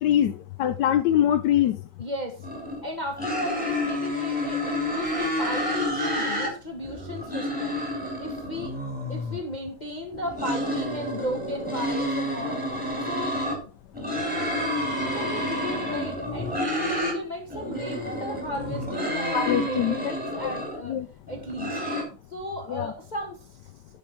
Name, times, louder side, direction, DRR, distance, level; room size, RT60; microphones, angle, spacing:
voice 1, 0.0-1.8 19.3-20.5 20.8-21.1 22.7-22.9, left 11 dB, 80° left, 1.2 m, -24 dB
voice 2, 2.0-7.9 8.2-8.8 9.1-13.7 15.0-21.0 21.3-21.7 22.3-23.7, left 1 dB, 25° left, 1.4 m, -35 dB
sound 1, 2.4-2.8 3.2-6.5 6.8-9.4 10.1-13.6 13.9-17.2 17.5-20.8 21.3-22.0, left 1 dB, 5° right, 3.9 m, -29 dB
11.0 x 6.0 x 4.6 m
omnidirectional pair, 1.9 m